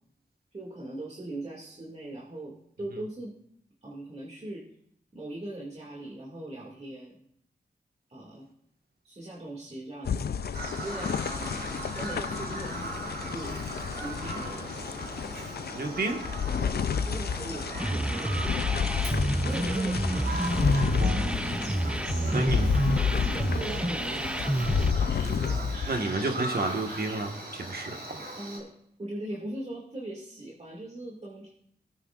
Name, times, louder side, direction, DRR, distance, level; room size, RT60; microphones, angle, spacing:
voice 1, 0.5-3.3 3.8-4.6 5.1-7.3 8.1-8.5 9.0-10.4 10.8-13.6 14.0-14.5 16.6-20.3 21.7-22.6 23.3-24.6 28.4-28.7 29.0-31.5, right 1 dB, 40° right, -4 dB, 2.3 m, -40 dB
sound 1, 10.0-26.0, left 6 dB, 70° left, 0.5 m, -31 dB
Bird vocalization bird call bird song, 10.5-28.6, right 1 dB, 80° right, 4.8 m, -39 dB
voice 2, 15.8-16.2 21.0-21.4 22.3-22.8 25.2-28.2, right 2 dB, 65° right, 3 dB, 1.6 m, -31 dB
sound 2, 17.8-24.9, right 1 dB, 5° right, 0.4 m, -28 dB
18.5 x 9.1 x 2.5 m, 0.69 s
cardioid pair, 65°, 17 cm